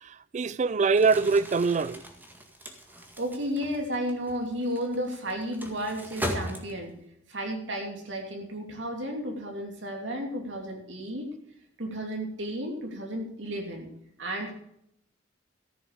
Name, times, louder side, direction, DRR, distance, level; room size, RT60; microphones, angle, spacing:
voice 1, 0.0-2.0, right 4 dB, 40° right, 0.4 m, -24 dB
Crumpling crinkling, 0.9-7.1, equal, 10° right, 1.9 m, -39 dB
voice 2, 3.2-6.9 7.3-11.3 11.8-13.9 14.2-14.5, equal, 70° right, 3.0 m, -33 dB
14.0 x 7.7 x 6.6 m
head